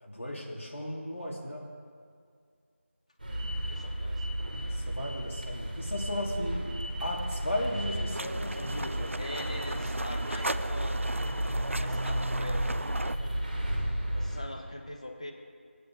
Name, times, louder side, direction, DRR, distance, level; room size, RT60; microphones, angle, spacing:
voice 1, 0.0-1.6 4.7-9.1, left 1 dB, 75° left, -2 dB, 2.8 m, -36 dB
sound 1, 3.2-14.4, right 1 dB, 40° right, 2.1 m, -33 dB
voice 2, 3.7-4.3 9.2-11.0 11.8-13.9 14.1-15.3, left 1 dB, 30° left, 4 dB, 1.0 m, -43 dB
sound 2, 8.1-13.2, right 2 dB, 75° right, 0.5 m, -37 dB
17.0 x 9.5 x 4.7 m, 2.2 s
figure-of-eight pair, 175°, 7 cm